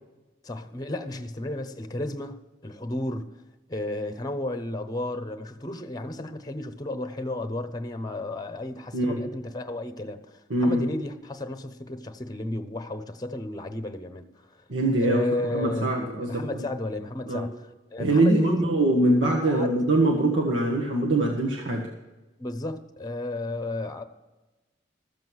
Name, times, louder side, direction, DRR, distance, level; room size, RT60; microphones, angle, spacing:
voice 1, 0.4-3.3 3.7-14.2 14.5-14.6 15.0-16.0 16.2-18.7 19.5-19.7 22.4-24.0, left 1 dB, 20° left, 0.9 m, -33 dB
voice 2, 8.9-9.3 10.5-10.9 14.7-16.4 17.3-17.4 18.0-21.8, right 1 dB, 80° right, 1.6 m, -23 dB
14.0 x 7.6 x 6.3 m
head